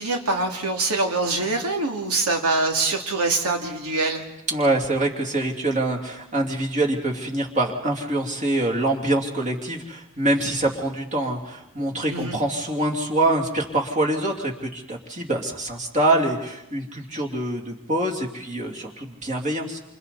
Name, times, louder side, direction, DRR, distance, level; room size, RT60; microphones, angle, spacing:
voice 1, 0.0-4.2 11.9-12.4, right 3 dB, 85° right, 2 dB, 2.8 m, -24 dB
voice 2, 4.5-19.8, right 1 dB, 35° right, 0 dB, 2.9 m, -25 dB
28.0 x 28.0 x 4.2 m, 0.90 s
head